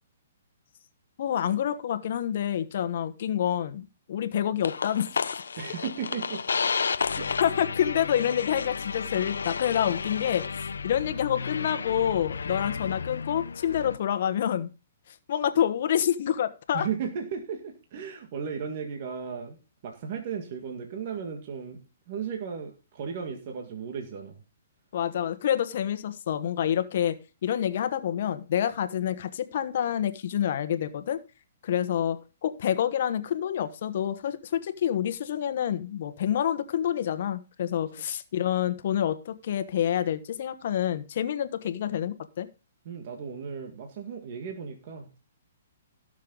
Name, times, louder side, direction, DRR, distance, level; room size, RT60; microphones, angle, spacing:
voice 1, 1.2-5.3 7.4-14.7 15.3-16.9 24.9-31.2 31.6-42.5, left 10 dB, 55° left, 11 dB, 1.2 m, -28 dB
sound 1, 4.6-14.0, left 5 dB, 90° left, 0.6 m, -32 dB
voice 2, 5.6-6.4 7.1-7.3 16.7-19.6 19.8-21.8 22.1-24.4 42.9-45.2, right 6 dB, 45° right, 3 dB, 1.9 m, -35 dB
16.5 x 6.6 x 3.9 m, 0.32 s
hypercardioid pair, 150°, 0 cm